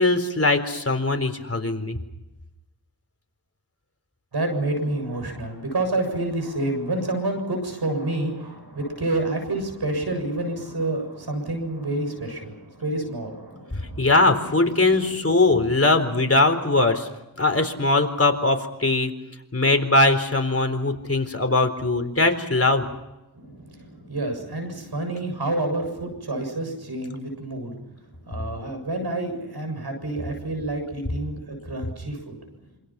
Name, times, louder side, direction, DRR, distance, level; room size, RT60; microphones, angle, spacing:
voice 1, 0.0-2.0 14.0-17.1 17.4-19.1 19.5-22.9, left 2 dB, 40° left, 6 dB, 4.1 m, -20 dB
voice 2, 4.3-14.1 14.7-15.1 15.5-15.6 23.3-27.7 28.3-32.4, right 2 dB, 85° right, 6 dB, 7.2 m, -28 dB
27.0 x 26.0 x 5.9 m, 0.97 s
cardioid pair, 45°, 38 cm